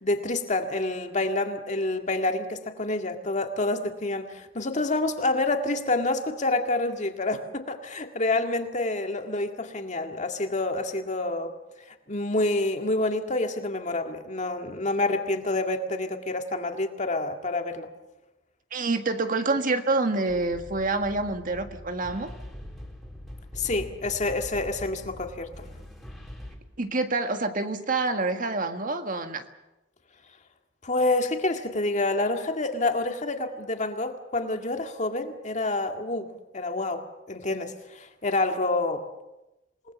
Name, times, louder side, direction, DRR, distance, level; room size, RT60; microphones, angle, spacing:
voice 1, 0.0-11.5 12.1-17.9 23.6-25.6 30.8-39.0, left 2 dB, 40° left, 5 dB, 2.0 m, -28 dB
voice 2, 18.7-22.3 26.8-29.4, right 3 dB, 50° right, 7 dB, 1.7 m, -27 dB
sound 1, 20.3-26.6, left 1 dB, ahead, 3.8 m, -42 dB
28.0 x 19.5 x 7.0 m, 0.99 s
head